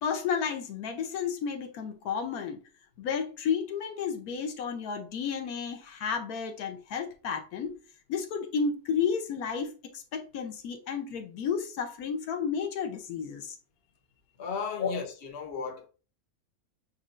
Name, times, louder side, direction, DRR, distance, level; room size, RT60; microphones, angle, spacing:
voice 1, 0.0-2.6 3.0-7.7 8.1-13.6 14.8-14.9, left 6 dB, 80° left, 1.2 m, -32 dB
voice 2, 14.4-15.9, left 5 dB, 50° left, 0.9 m, -35 dB
7.5 x 2.7 x 2.4 m
omnidirectional pair, 1.6 m